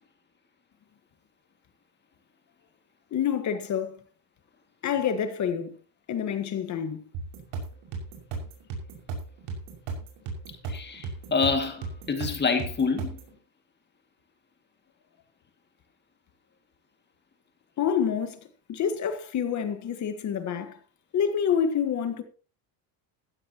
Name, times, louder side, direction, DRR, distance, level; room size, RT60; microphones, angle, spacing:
voice 1, 3.1-4.0 4.8-5.7 6.1-7.0 17.8-18.4 18.7-20.8 21.1-22.2, left 8 dB, 40° left, 1.5 m, -27 dB
sound 1, 7.1-13.3, right 4 dB, 70° right, 6.3 m, -36 dB
voice 2, 10.7-13.2, left 5 dB, 25° left, 2.3 m, -27 dB
15.5 x 15.0 x 3.0 m
cardioid pair, 150°, 45 cm